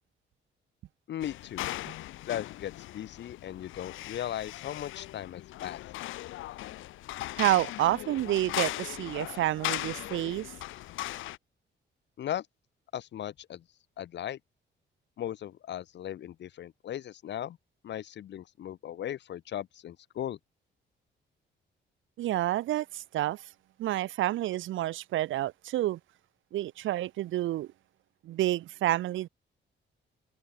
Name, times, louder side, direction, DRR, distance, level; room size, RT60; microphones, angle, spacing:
voice 1, 1.1-1.6 2.3-5.8 12.2-12.5 12.9-13.6 14.0-14.4 15.2-17.6 17.8-20.4, left 11 dB, 65° left, 1.5 m, -37 dB
sound 1, 1.2-11.4, left 16 dB, 85° left, 0.4 m, -38 dB
voice 2, 7.4-10.5 22.2-23.5 23.8-26.0 26.5-27.7 28.2-29.3, right 14 dB, 80° right, 0.6 m, -29 dB
cardioid pair, 165°, 20 cm